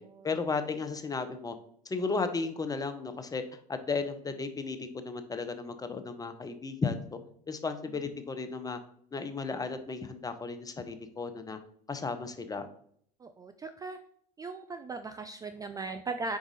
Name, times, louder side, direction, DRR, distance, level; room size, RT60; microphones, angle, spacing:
voice 1, 0.2-1.6 1.8-7.2 7.5-8.8 9.1-11.6 11.9-12.7, left 4 dB, 15° left, 9 dB, 0.8 m, -34 dB
voice 2, 13.2-14.0 14.4-16.4, right 3 dB, 15° right, 8 dB, 0.4 m, -38 dB
5.0 x 4.8 x 4.0 m, 0.64 s
hypercardioid pair, 85°, 21 cm